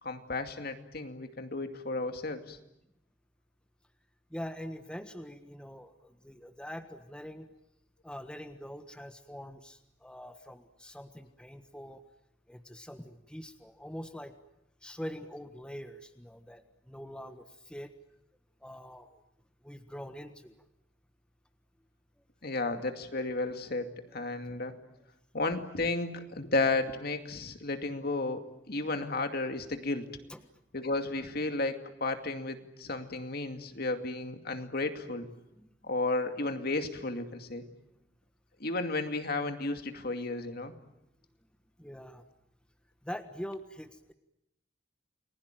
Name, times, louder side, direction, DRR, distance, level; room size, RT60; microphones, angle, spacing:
voice 1, 0.0-2.6 22.4-24.8 25.3-30.1 30.7-35.3 35.8-37.7 38.6-40.7, left 2 dB, 55° left, 6 dB, 2.4 m, -33 dB
voice 2, 4.3-7.5 8.0-12.0 12.5-14.3 14.8-17.9 18.6-19.2 19.6-20.6 24.1-24.2 30.3-30.4 33.0-33.1 35.5-35.7 41.8-42.2 43.0-44.1, equal, 5° left, 7 dB, 1.4 m, -44 dB
30.0 x 21.0 x 9.2 m, 0.84 s
head